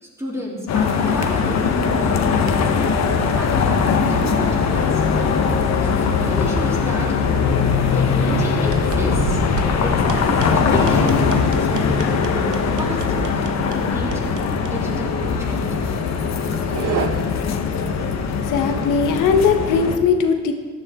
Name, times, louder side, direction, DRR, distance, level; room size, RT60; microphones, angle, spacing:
voice 1, 0.0-3.0 3.3-5.3 5.8-7.6 7.9-9.4 9.8-14.2 14.7-15.9, equal, 10° right, -4 dB, 3.3 m, -32 dB
sound 1, 0.7-20.0, left 5 dB, 60° left, 1.2 m, -20 dB
sound 2, 1.4-13.2, right 3 dB, 55° right, 3.9 m, -36 dB
sound 3, 8.6-17.1, right 6 dB, 75° right, 1.3 m, -31 dB
voice 2, 18.5-20.5, left 5 dB, 85° left, 5 dB, 1.3 m, -19 dB
14.5 x 10.5 x 3.7 m, 1.5 s
cardioid pair, 90°, 30 cm